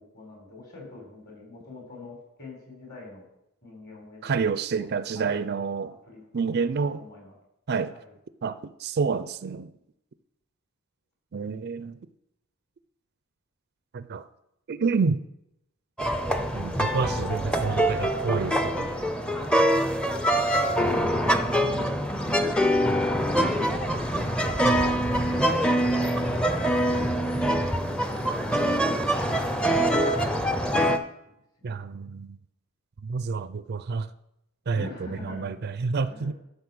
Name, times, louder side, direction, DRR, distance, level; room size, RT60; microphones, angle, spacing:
voice 1, 0.0-3.2 3.6-5.4 6.0-6.3 6.5-7.4 7.8-8.1 20.3-21.9 22.7-23.8 31.6-32.2 34.7-35.6 36.1-36.3, left 3 dB, 45° left, 4.2 m, -45 dB
voice 2, 4.2-5.9 6.3-7.0 7.7-7.9 8.4-9.7 11.3-12.0 13.9-14.3 14.7-15.2 16.5-18.9 24.6-24.9 28.6-28.9 31.6-32.4 33.0-34.1 34.7-36.3, right 5 dB, 50° right, 0.4 m, -29 dB
sound 1, 16.0-31.0, equal, 5° left, 0.6 m, -24 dB
12.0 x 5.4 x 6.1 m
head